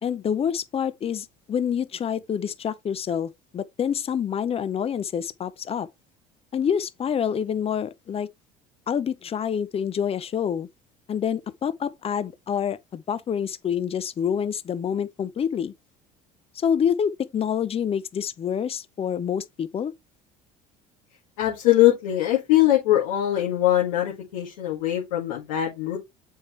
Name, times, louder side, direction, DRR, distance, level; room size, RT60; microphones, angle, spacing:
voice 1, 0.0-5.9 6.5-8.3 8.9-10.7 11.1-15.7 16.6-19.9, left 8 dB, 35° left, 0.7 m, -27 dB
voice 2, 21.4-26.0, left 13 dB, 90° left, 1.9 m, -22 dB
7.3 x 4.5 x 3.1 m
supercardioid pair, 95°, 18 cm